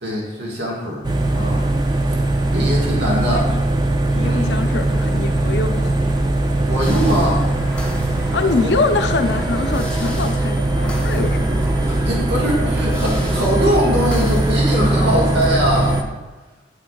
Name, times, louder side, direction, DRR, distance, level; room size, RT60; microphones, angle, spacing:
voice 1, 0.0-1.0 1.3-1.6 2.5-3.4 4.2-4.6 6.6-7.5 8.6-8.7 11.9-16.0, equal, 75° right, -4 dB, 1.5 m, -21 dB
sound 1, 1.0-16.0, right 2 dB, 25° right, 0.5 m, -20 dB
voice 2, 3.3-3.6 4.1-5.9 8.3-11.6, left 3 dB, 75° left, 7 dB, 0.6 m, -24 dB
sound 2, 6.8-15.4, left 1 dB, 5° left, 0.8 m, -36 dB
9.5 x 5.9 x 2.3 m, 1.2 s
head